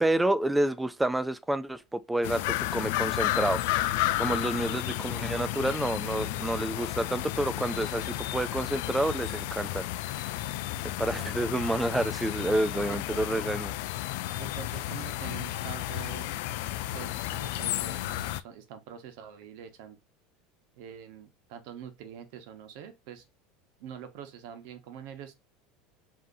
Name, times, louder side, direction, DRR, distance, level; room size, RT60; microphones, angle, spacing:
voice 1, 0.0-3.6 4.2-9.8 11.0-13.7, right 1 dB, 5° right, 0.3 m, -29 dB
sound 1, 2.2-18.4, left 15 dB, 70° left, 0.3 m, -32 dB
voice 2, 12.9-13.6 14.4-16.4 16.9-20.0 20.8-23.2 23.8-25.3, right 9 dB, 65° right, 0.9 m, -45 dB
5.2 x 2.7 x 2.6 m
supercardioid pair, 150°, 0 cm